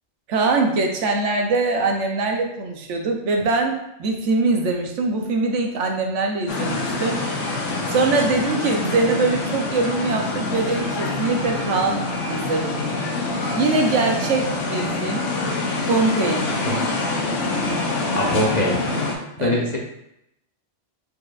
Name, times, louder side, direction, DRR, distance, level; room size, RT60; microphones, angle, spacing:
voice 1, 0.3-7.2 7.9-12.9 13.6-15.3 15.8-16.4 19.4-19.6, right 3 dB, 80° right, 2 dB, 1.1 m, -22 dB
sound 1, 6.5-19.2, left 2 dB, 90° left, 1.1 m, -25 dB
voice 2, 18.2-18.8 19.4-19.8, left 1 dB, 40° left, -2 dB, 0.8 m, -22 dB
4.8 x 4.4 x 2.4 m, 0.80 s
omnidirectional pair, 1.2 m